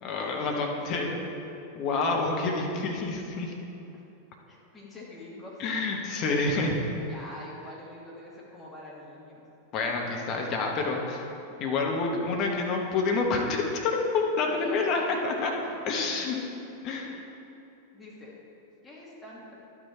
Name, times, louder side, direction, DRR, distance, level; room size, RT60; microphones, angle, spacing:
voice 1, 0.0-1.2 1.7-3.5 5.6-6.8 9.7-11.3 11.6-15.5 15.9-16.4 16.8-17.1, left 3 dB, 35° left, 0 dB, 1.4 m, -28 dB
voice 2, 0.7-1.1 2.0-2.4 3.9-4.0 4.5-5.6 7.1-9.4 14.5-16.2 17.0-17.2 17.9-18.3 18.8-19.6, left 2 dB, 10° left, -6 dB, 2.4 m, -46 dB
11.5 x 6.1 x 4.4 m, 2.7 s
figure-of-eight pair, 90°, 0 cm